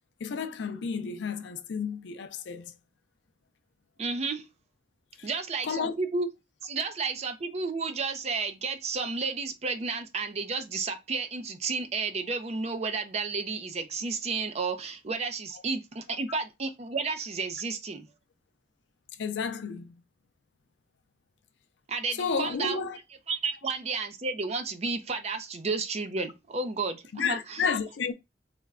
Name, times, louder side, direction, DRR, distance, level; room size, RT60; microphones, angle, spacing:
voice 1, 0.2-2.7 5.2-5.3 5.6-5.9 19.2-20.0 22.2-23.0 27.1-28.1, left 5 dB, 65° left, 0.4 m, -31 dB
voice 2, 4.0-4.4 5.2-6.3 6.6-18.1 21.9-22.8 23.3-27.6, right 4 dB, 35° right, 0.4 m, -32 dB
3.3 x 2.2 x 3.5 m
head